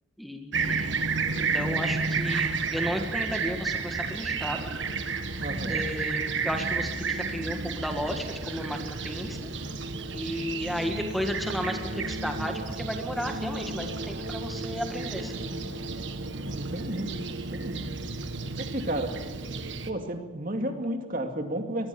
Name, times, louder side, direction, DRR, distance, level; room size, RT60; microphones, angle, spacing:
voice 1, 0.2-1.2 1.5-4.7 5.6-9.5 10.1-15.6, equal, ahead, 4 dB, 1.7 m, -33 dB
Fixed-wing aircraft airplane, 0.5-19.9, right 4 dB, 65° right, 1.5 m, -32 dB
voice 2, 5.4-5.8 16.6-17.1 17.5-17.8 18.6-19.1 19.8-21.9, right 1 dB, 45° right, 4 dB, 2.3 m, -32 dB
23.0 x 19.5 x 7.0 m, 1.2 s
head